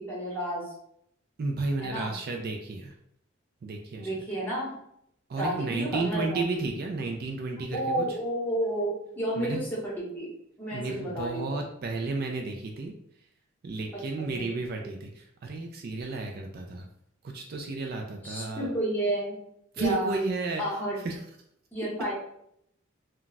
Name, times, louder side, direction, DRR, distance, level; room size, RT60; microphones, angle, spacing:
voice 1, 0.1-0.7 1.8-2.1 4.0-4.8 5.4-6.4 7.7-10.3 10.6-11.6 13.9-14.0 14.3-14.4 14.8-14.9 18.2-19.4 19.8-20.1 20.6-21.0 21.7-22.1, right 1 dB, 10° left, -6 dB, 1.0 m, -31 dB
voice 2, 1.4-2.9 3.6-4.1 5.3-8.1 9.4-9.6 10.7-12.9 13.6-16.9 17.2-18.7 19.7-20.6 21.0-21.2, right 3 dB, 50° right, 2 dB, 0.3 m, -32 dB
2.3 x 2.2 x 3.9 m, 0.73 s
head